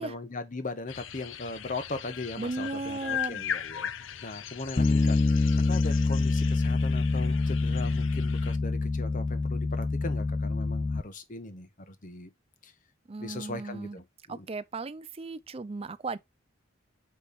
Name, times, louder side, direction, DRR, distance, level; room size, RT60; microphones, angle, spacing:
voice 1, 0.0-12.3 12.6-12.7 13.2-14.5, left 2 dB, 40° left, 1.1 m, -39 dB
sound 1, 0.9-8.6, left 10 dB, 75° left, 0.7 m, -39 dB
voice 2, 2.4-3.4 13.1-14.0 14.3-16.2, right 3 dB, 30° right, 0.5 m, -36 dB
Bass guitar, 4.8-11.0, left 3 dB, 25° left, 0.3 m, -26 dB
8.5 x 3.3 x 4.2 m
head